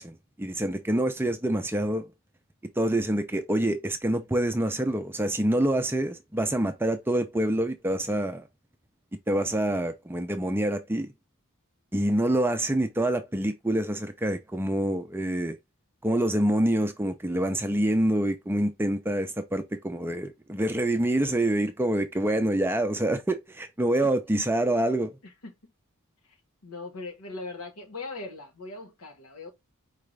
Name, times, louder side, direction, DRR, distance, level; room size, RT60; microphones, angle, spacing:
voice 1, 0.0-2.0 2.8-8.4 9.3-11.1 11.9-15.6 16.0-25.1, right 1 dB, 10° right, 0.4 m, -26 dB
voice 2, 25.2-25.7 26.3-26.4 26.6-29.5, left 3 dB, 85° left, 1.2 m, -40 dB
4.7 x 2.5 x 3.2 m
head